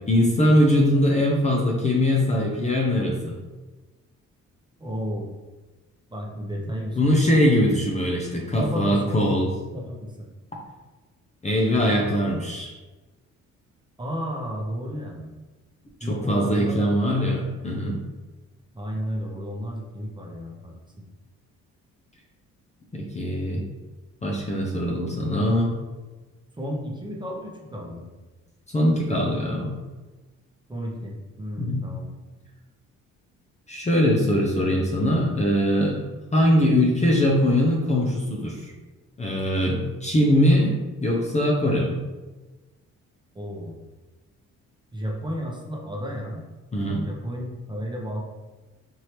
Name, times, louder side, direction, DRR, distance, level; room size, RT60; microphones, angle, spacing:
voice 1, 0.1-3.4 7.0-9.5 11.4-12.7 16.0-18.0 22.9-23.6 24.2-25.7 28.7-29.7 31.6-31.9 33.7-36.0 36.3-38.7 39.2-42.0 46.7-47.0, equal, 25° left, -2 dB, 0.7 m, -22 dB
voice 2, 4.8-5.3 6.1-7.2 8.6-9.2 9.7-10.3 14.0-15.3 16.0-17.4 18.7-21.0 26.6-28.1 30.7-32.1 43.3-43.8 44.9-46.4 47.0-48.2, equal, 15° right, -2 dB, 1.0 m, -33 dB
4.5 x 2.8 x 3.2 m, 1.2 s
cardioid pair, 90°, 30 cm